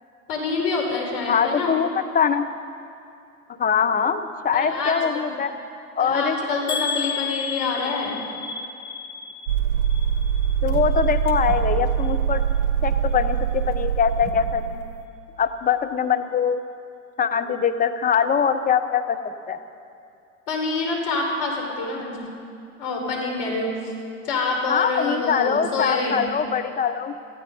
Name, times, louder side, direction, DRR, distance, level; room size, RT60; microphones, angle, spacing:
voice 1, 0.3-1.7 4.5-5.2 6.0-8.2 20.5-22.2 22.8-23.9 24.2-26.2, left 3 dB, 55° left, 0 dB, 4.6 m, -26 dB
voice 2, 1.3-2.5 3.6-5.5 6.0-6.8 10.6-12.4 12.8-14.8 15.4-16.6 17.2-19.2 19.5-19.6 24.7-27.2, left 7 dB, 20° left, 8 dB, 0.9 m, -23 dB
sound 1, 6.7-10.7 11.0-11.6 12.0-12.2 12.5-12.6, left 6 dB, 80° left, 3.3 m, -32 dB
sound 2, 9.5-15.0, right 8 dB, 60° right, 1.8 m, -23 dB
18.0 x 14.0 x 5.4 m, 2.5 s
hypercardioid pair, 85°, 42 cm